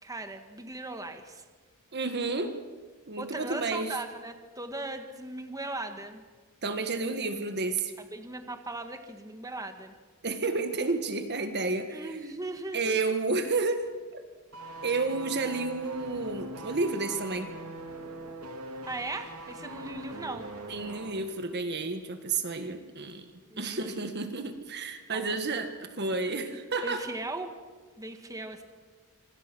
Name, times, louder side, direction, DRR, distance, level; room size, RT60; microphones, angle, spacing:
voice 1, 0.0-1.4 3.2-6.2 8.1-9.9 11.9-13.0 18.9-20.5 23.5-23.9 25.1-25.7 26.8-27.5 28.0-28.6, right 2 dB, 15° right, 6 dB, 1.7 m, -38 dB
voice 2, 1.9-2.6 3.1-4.0 6.6-7.9 10.2-12.1 12.7-13.8 14.1-14.2 14.8-17.5 20.7-23.3 23.6-27.1, right 3 dB, 50° right, 8 dB, 1.6 m, -31 dB
sound 1, 14.5-21.2 21.5-21.6, right 1 dB, 85° right, 3.2 m, -42 dB
26.5 x 25.5 x 6.3 m, 1.4 s
head